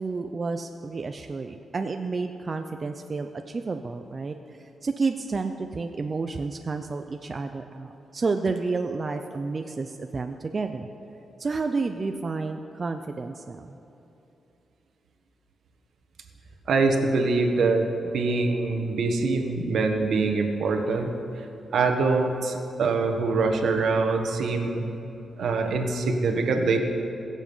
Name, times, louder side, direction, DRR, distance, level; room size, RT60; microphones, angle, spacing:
voice 1, 0.0-4.4 4.8-10.9 11.4-13.8, right 4 dB, 35° right, 6 dB, 0.5 m, -30 dB
voice 2, 16.7-21.1 21.7-24.9 25.4-26.8, right 3 dB, 75° right, 4 dB, 1.3 m, -24 dB
21.5 x 7.3 x 5.6 m, 2.9 s
cardioid pair, 110°, 0 cm